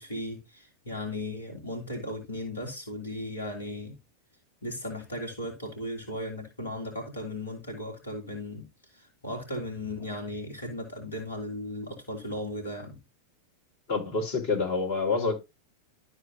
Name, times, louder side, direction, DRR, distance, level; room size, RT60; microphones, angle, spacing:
voice 1, 0.0-4.0 4.6-13.0, left 1 dB, 75° left, 3.4 m, -36 dB
voice 2, 13.9-15.4, left 4 dB, 50° left, 4.7 m, -27 dB
13.0 x 4.4 x 4.1 m
figure-of-eight pair, 90°, 0 cm